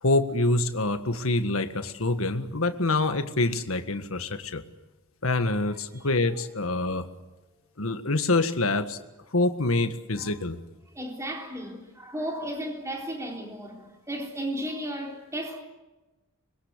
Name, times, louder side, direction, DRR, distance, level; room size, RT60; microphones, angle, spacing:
voice 1, 0.0-4.6 5.2-7.1 7.8-9.0 9.3-10.6, left 2 dB, 75° left, 1.7 m, -26 dB
voice 2, 10.9-15.6, equal, 15° right, 3.8 m, -34 dB
25.5 x 21.5 x 8.3 m
head